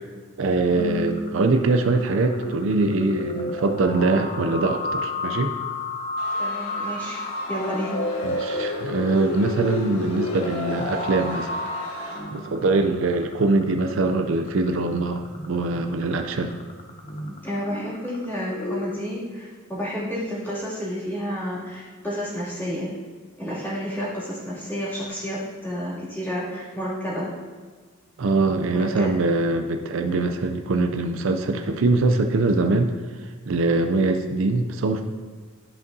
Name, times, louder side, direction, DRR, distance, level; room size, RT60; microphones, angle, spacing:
voice 1, 0.4-5.5 8.2-11.5 12.3-16.5 28.2-32.9 33.2-35.0, right 3 dB, 65° right, 5 dB, 0.4 m, -23 dB
sound 1, 0.7-18.9, left 2 dB, 35° left, 0.7 m, -32 dB
sound 2, 6.2-12.2, left 1 dB, 85° left, 1.4 m, -39 dB
voice 2, 6.4-7.2 7.5-8.0 12.3-12.4 17.4-22.9 23.4-27.3 28.7-29.1, equal, 10° left, -10 dB, 2.5 m, -30 dB
12.5 x 5.3 x 2.7 m, 1.5 s
head